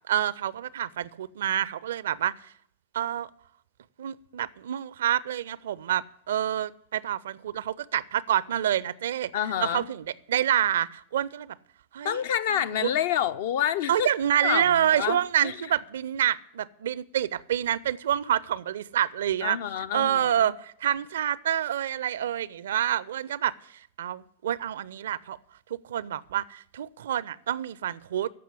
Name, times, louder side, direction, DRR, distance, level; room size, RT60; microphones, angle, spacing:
voice 1, 0.1-2.3 2.9-3.3 4.0-9.3 9.6-11.6 11.9-12.2 12.8-12.9 13.9-19.6 19.9-23.5 24.0-25.4 25.9-28.3, right 10 dB, 60° right, 0.4 m, -27 dB
voice 2, 9.3-9.9 12.0-14.1 14.4-15.6 19.4-20.5, left 10 dB, 55° left, 0.5 m, -28 dB
14.5 x 5.7 x 9.5 m
figure-of-eight pair, 90°, 0 cm